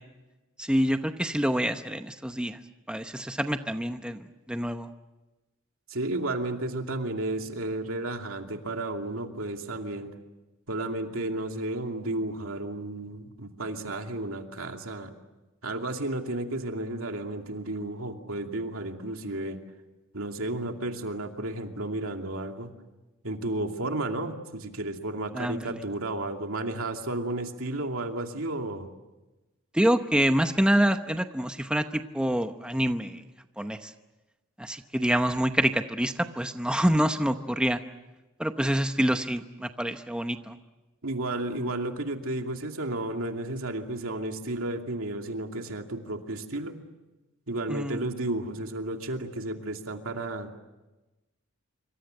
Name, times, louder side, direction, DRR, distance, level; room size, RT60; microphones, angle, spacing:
voice 1, 0.6-2.6 2.9-4.9 25.3-25.8 29.7-33.2 33.6-33.9 34.6-37.8 38.4-40.5 47.7-48.0, equal, 5° right, 7 dB, 0.8 m, -26 dB
voice 2, 5.9-10.1 10.7-15.1 15.6-19.6 20.1-22.7 23.2-28.9 41.0-46.8 47.5-50.6, right 2 dB, 75° right, 4 dB, 2.6 m, -32 dB
26.0 x 25.0 x 7.7 m, 1.1 s
head